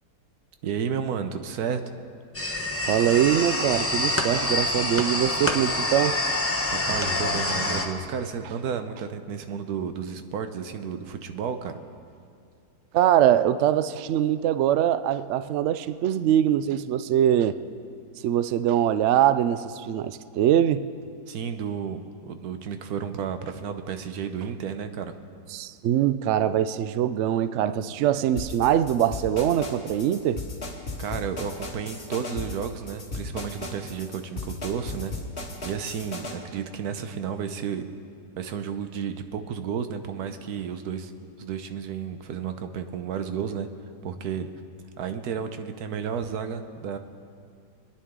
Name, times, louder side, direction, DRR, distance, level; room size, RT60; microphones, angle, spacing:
voice 1, 0.6-1.9 6.7-11.8 21.3-25.1 31.0-35.1 35.6-37.8 38.4-41.1 41.4-43.7 44.0-44.5 45.0-47.0, right 7 dB, 70° right, 8 dB, 1.3 m, -32 dB
sound 1, 2.3-7.9, left 2 dB, 10° left, 0.6 m, -26 dB
voice 2, 2.9-6.2 12.9-17.6 18.2-20.8 25.5-30.4, right 11 dB, 90° right, 13 dB, 0.6 m, -23 dB
sound 2, 28.4-36.4, left 2 dB, 35° left, 1.9 m, -35 dB
25.5 x 9.8 x 3.7 m, 2.4 s
omnidirectional pair, 1.8 m